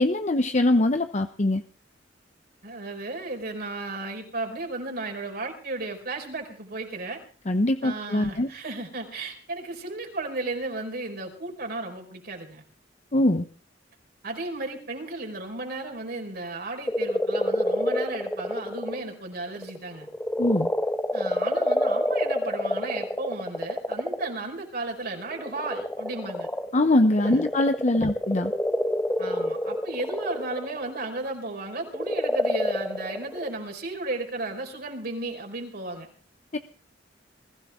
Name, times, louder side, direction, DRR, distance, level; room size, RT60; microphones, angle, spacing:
voice 1, 0.0-1.6 7.5-8.5 13.1-13.5 20.4-20.7 26.7-28.5 36.5-36.6, left 1 dB, 40° left, 8 dB, 0.9 m, -22 dB
voice 2, 2.6-7.2 7.8-12.6 14.2-20.1 21.1-26.5 27.2-27.5 27.9-28.1 29.2-36.1, right 2 dB, 55° right, 2 dB, 5.2 m, -34 dB
sound 1, 16.9-19.0 19.5-24.4 25.2-31.3 31.9-33.5, left 1 dB, 10° left, 1.2 m, -28 dB
21.5 x 16.5 x 3.8 m, 0.42 s
head